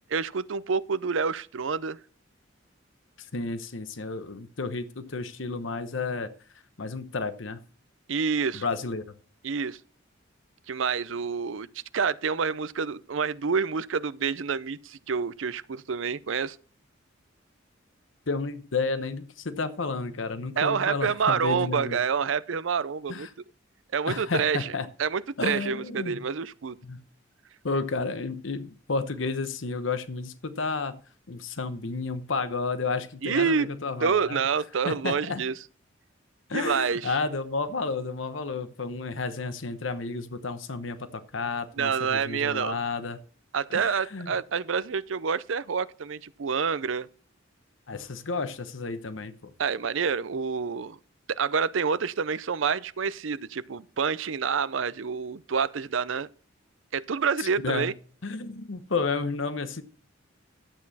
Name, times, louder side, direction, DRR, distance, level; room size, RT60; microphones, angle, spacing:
voice 1, 0.1-2.0 8.1-8.6 9.4-9.8 10.7-11.7 11.9-16.6 20.6-23.3 23.9-24.7 25.0-26.8 33.2-33.7 34.0-35.5 36.5-37.1 41.8-42.8 43.5-47.1 49.6-51.0 51.3-56.3 56.9-57.9, right 6 dB, 70° right, 0.6 m, -28 dB
voice 2, 3.2-6.3 6.8-7.6 8.5-9.1 18.3-22.0 23.1-23.3 24.1-24.9 25.4-26.2 26.8-27.0 27.6-31.0 31.3-34.4 34.8-35.4 36.5-43.2 43.7-44.3 47.9-49.5 57.4-57.9 58.2-59.8, left 4 dB, 75° left, 1.0 m, -31 dB
12.0 x 8.4 x 4.2 m
head